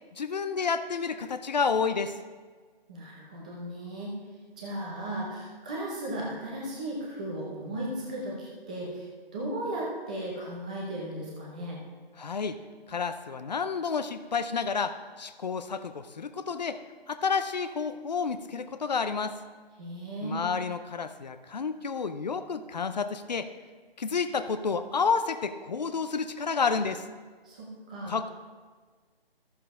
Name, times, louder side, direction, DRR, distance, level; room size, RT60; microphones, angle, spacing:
voice 1, 0.2-2.1 12.2-12.6 12.9-16.8 17.1-19.4 20.2-23.5 24.0-27.0 28.1-28.3, left 5 dB, 45° left, 11 dB, 0.6 m, -30 dB
voice 2, 2.9-4.1 4.6-9.0 9.3-11.8 19.8-20.4 27.4-28.2, right 1 dB, 10° right, -4 dB, 0.6 m, -36 dB
13.5 x 7.0 x 3.7 m, 1.5 s
figure-of-eight pair, 165°, 31 cm